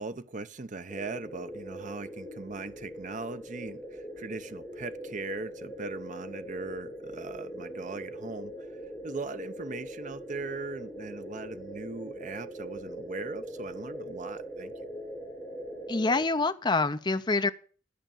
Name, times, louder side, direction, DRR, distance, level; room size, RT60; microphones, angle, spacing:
voice 1, 0.0-8.5 9.0-14.7, right 3 dB, 45° right, 0.7 m, -39 dB
sound 1, 0.9-16.3, right 1 dB, 5° left, 4.0 m, -41 dB
voice 2, 15.9-17.5, left 3 dB, 25° left, 0.7 m, -26 dB
11.5 x 5.9 x 9.0 m
head